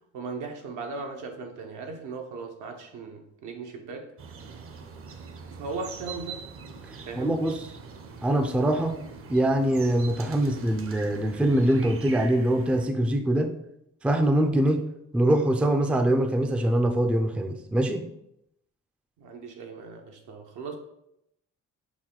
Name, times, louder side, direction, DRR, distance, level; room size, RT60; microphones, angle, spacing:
voice 1, 0.1-4.1 5.5-6.5 7.1-7.5 19.2-20.8, right 4 dB, 80° right, 3 dB, 0.8 m, -37 dB
sound 1, 4.2-12.9, right 5 dB, 45° right, 0.6 m, -43 dB
voice 2, 7.2-7.7 8.2-9.0 9.3-13.5 14.0-14.8 15.1-18.0, right 1 dB, 5° right, 6 dB, 0.3 m, -23 dB
5.9 x 2.2 x 3.7 m, 0.80 s
cardioid pair, 90°, 30 cm